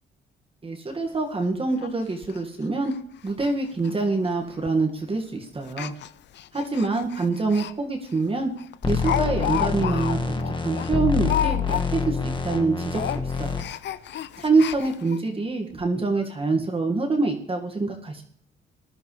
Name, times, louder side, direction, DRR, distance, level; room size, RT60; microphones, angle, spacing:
voice 1, 0.6-2.9 3.2-5.9 6.5-8.5 8.9-10.2 10.5-13.7 14.4-18.2, right 3 dB, 30° right, 1 dB, 2.0 m, -25 dB
Speech, 0.9-1.0 1.3-1.4 1.8-1.9 2.2-2.4 2.8-3.0 3.2-3.5 3.8-3.9 4.7-4.9 5.6-7.7 8.1-8.2 8.6-12.1 12.4-12.6 12.9-15.2 15.8-15.9 16.2-16.3, left 11 dB, 60° left, 0.6 m, -31 dB
sound 1, 8.8-13.6, left 5 dB, 25° left, 1.6 m, -26 dB
19.5 x 11.5 x 3.3 m, 0.63 s
cardioid pair, 90°, 20 cm